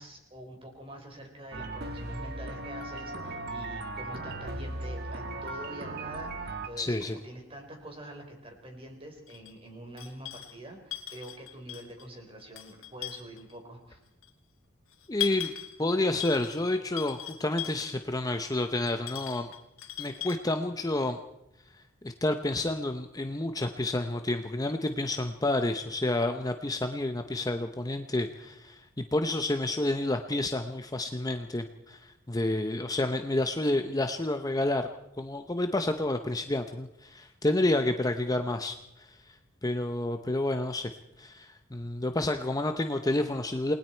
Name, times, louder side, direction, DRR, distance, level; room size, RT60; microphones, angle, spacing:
voice 1, 0.0-14.0, right 1 dB, 25° right, 3 dB, 4.3 m, -45 dB
sound 1, 1.5-6.7, right 2 dB, 50° right, 1.6 m, -37 dB
voice 2, 6.8-7.2 15.1-19.5 20.0-21.2 22.0-34.9 35.2-39.3 39.6-40.9 41.2-43.7, left 2 dB, 20° left, 7 dB, 0.8 m, -29 dB
sound 2, 9.3-9.5 10.0-10.6 10.9-12.0 12.4-13.5 14.2-14.3 14.9-15.8 16.2-16.7 17.0-18.0 18.9-20.4, left 13 dB, 80° left, 2.3 m, -38 dB
28.5 x 20.0 x 4.5 m, 0.85 s
head